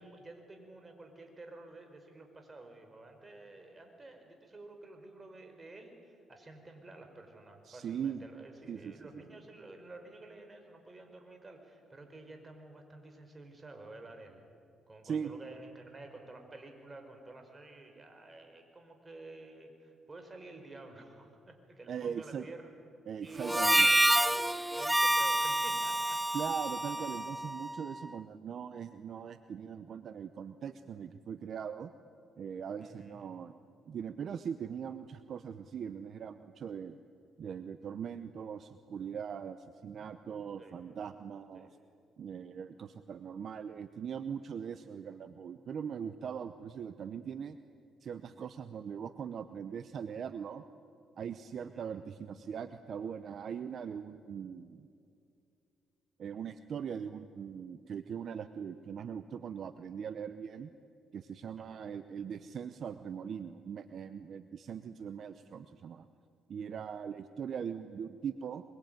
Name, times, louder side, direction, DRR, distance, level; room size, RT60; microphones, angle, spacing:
voice 1, 0.0-14.4 14.9-22.7 23.2-24.4 24.7-26.2 27.0-27.2 32.8-33.2 40.6-40.7 41.5-41.7 51.7-51.8 61.5-62.0, right 2 dB, 25° right, 4 dB, 5.0 m, -51 dB
voice 2, 7.6-8.2 8.7-9.1 15.0-15.3 21.9-22.5 23.1-23.9 26.3-31.9 32.4-33.5 33.9-37.0 37.4-41.8 42.2-47.6 48.0-50.6 51.2-54.9 56.2-60.7 61.1-66.1 66.5-68.6, right 7 dB, 60° right, 11 dB, 0.9 m, -40 dB
Harmonica, 23.4-28.0, right 1 dB, 10° right, 0.8 m, -28 dB
24.0 x 23.0 x 9.3 m, 2.5 s
cardioid pair, 90°, 0 cm